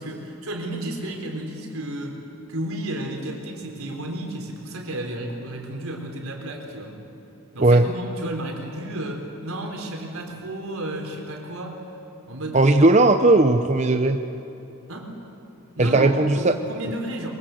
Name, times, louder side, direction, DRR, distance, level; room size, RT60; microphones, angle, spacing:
voice 1, 0.0-2.2 2.5-7.0 7.5-11.8 12.3-12.7 14.9-15.1 15.8-17.3, right 1 dB, 75° right, 2 dB, 3.7 m, -32 dB
voice 2, 12.5-14.2 15.8-16.6, right 2 dB, 30° right, 7 dB, 0.7 m, -17 dB
23.0 x 22.5 x 7.8 m, 2.9 s
head